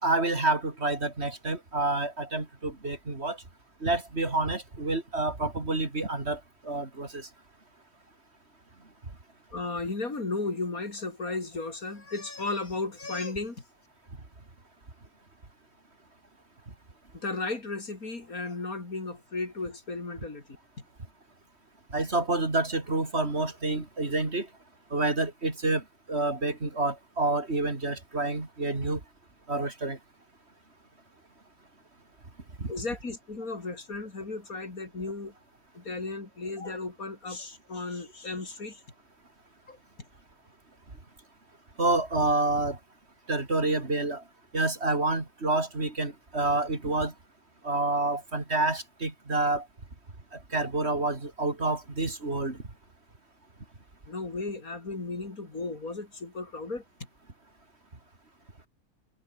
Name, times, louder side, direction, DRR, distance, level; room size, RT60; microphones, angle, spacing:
voice 1, 0.0-3.4 3.8-7.3 21.9-24.5 24.9-29.0 29.5-30.0 32.6-32.7 41.8-42.8 43.3-44.2 44.5-47.1 47.6-49.7 50.3-52.6, right 2 dB, 45° right, 3.6 m, -28 dB
voice 2, 9.5-13.6 17.1-20.4 32.7-35.3 35.7-38.8 39.7-39.8 54.1-56.8, left 3 dB, 70° left, 4.3 m, -35 dB
omnidirectional pair, 1.6 m